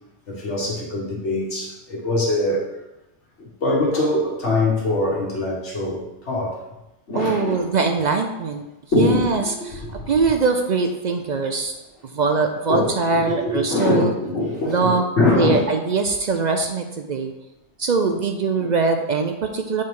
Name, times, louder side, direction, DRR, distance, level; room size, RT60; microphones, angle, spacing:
voice 1, 0.3-2.7 3.4-6.6 7.1-7.6 8.9-9.3 9.6-10.1 12.7-15.6, left 2 dB, 85° left, -4 dB, 1.7 m, -23 dB
voice 2, 7.2-8.6 9.0-11.7 12.1-14.1 14.7-15.0 15.3-17.3 17.8-19.8, right 4 dB, 55° right, 5 dB, 0.5 m, -22 dB
7.3 x 3.5 x 4.6 m, 0.93 s
omnidirectional pair, 1.2 m